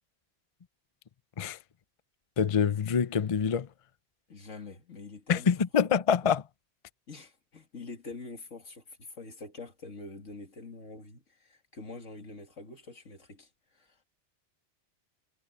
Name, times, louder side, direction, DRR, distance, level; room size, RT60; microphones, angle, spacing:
voice 1, 2.4-3.7 5.3-6.4, left 7 dB, 35° left, 0.6 m, -25 dB
voice 2, 4.3-5.5 7.1-14.0, left 3 dB, 90° left, 2.7 m, -45 dB
omnidirectional pair, 1.2 m